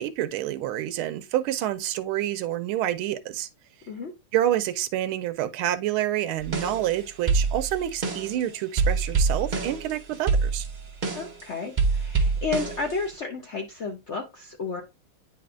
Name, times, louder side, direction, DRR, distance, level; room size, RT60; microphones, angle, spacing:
voice 1, 0.0-3.5 4.3-10.7, right 12 dB, 90° right, 1.5 m, -28 dB
sound 1, 6.4-7.0 7.3-8.4 8.8-11.4 11.8-13.1, right 4 dB, 45° right, 0.6 m, -25 dB
voice 2, 11.1-14.8, left 4 dB, 80° left, 0.6 m, -32 dB
9.2 x 4.2 x 2.4 m
omnidirectional pair, 2.3 m